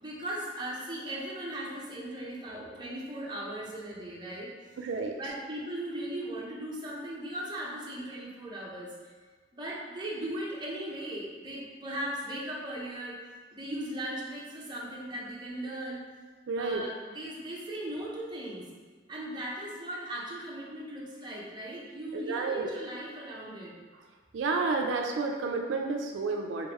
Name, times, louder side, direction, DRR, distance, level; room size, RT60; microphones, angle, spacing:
voice 1, 0.0-4.5 5.2-9.1 9.5-13.2 13.5-16.0 16.6-18.7 19.1-23.7, right 1 dB, 25° right, -5 dB, 0.7 m, -38 dB
voice 2, 4.8-5.2 16.5-16.8 22.2-22.7 24.3-26.7, right 4 dB, 80° right, 2 dB, 0.3 m, -30 dB
3.7 x 3.5 x 3.0 m, 1.4 s
head